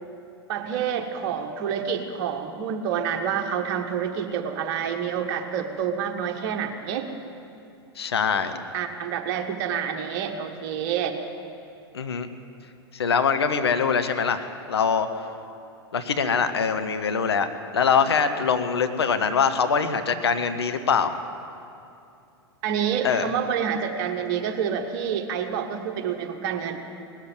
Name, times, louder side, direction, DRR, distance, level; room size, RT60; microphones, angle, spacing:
voice 1, 0.5-7.1 8.7-11.2 22.6-26.8, right 8 dB, 50° right, 4 dB, 1.5 m, -28 dB
voice 2, 8.0-8.5 11.9-12.3 12.9-15.1 15.9-17.5 17.7-21.1 23.0-23.3, left 6 dB, 75° left, 8 dB, 0.9 m, -23 dB
18.5 x 7.5 x 9.3 m, 2.6 s
figure-of-eight pair, 90°, 14 cm